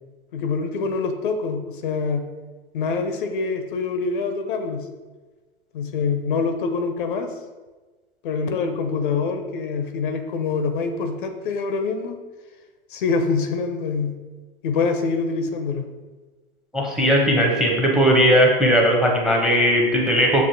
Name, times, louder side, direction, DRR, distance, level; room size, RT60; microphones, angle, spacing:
voice 1, 0.3-2.2 2.7-4.8 5.7-7.3 8.2-12.2 12.9-14.2 14.6-15.9, left 4 dB, 60° left, 7 dB, 0.5 m, -25 dB
voice 2, 16.7-20.5, equal, ahead, 0 dB, 0.7 m, -18 dB
6.8 x 2.5 x 2.6 m, 1.3 s
figure-of-eight pair, 90°, 30 cm